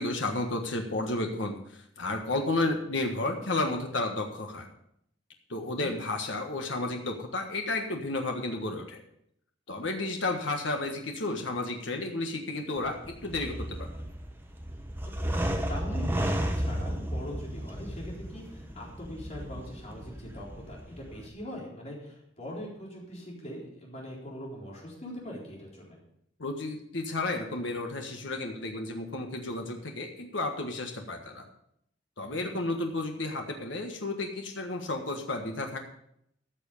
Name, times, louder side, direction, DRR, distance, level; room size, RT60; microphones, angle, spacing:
voice 1, 0.0-4.7 5.5-9.0 9.7-13.0 13.2-13.9 26.4-31.4 32.2-35.8, left 2 dB, 85° left, 3 dB, 1.5 m, -32 dB
sound 1, 12.8-21.3, equal, 10° right, 1.1 m, -34 dB
voice 2, 15.2-26.0 32.2-32.5, equal, 35° left, -3 dB, 4.1 m, -42 dB
13.5 x 7.1 x 5.4 m, 0.73 s
head